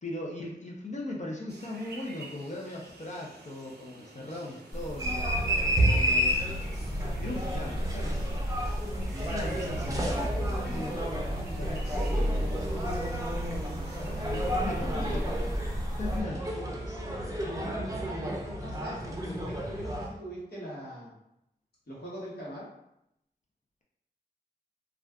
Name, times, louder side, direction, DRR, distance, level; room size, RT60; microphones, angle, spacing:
voice 1, 0.0-5.4 5.8-6.6 7.2-8.1 9.1-12.4 14.2-15.2 16.0-17.2, left 2 dB, 45° left, -2 dB, 0.6 m, -39 dB
sound 1, 1.5-14.6, right 3 dB, 75° right, 0.5 m, -50 dB
sound 2, 4.7-16.2, equal, 25° left, 1.1 m, -35 dB
sound 3, 5.0-20.1, equal, 20° right, 0.6 m, -31 dB
voice 2, 14.9-15.4 18.2-21.1 21.9-22.7, equal, 70° left, -8 dB, 1.2 m, -41 dB
2.4 x 2.3 x 3.5 m, 0.80 s
cardioid pair, 50°, 17 cm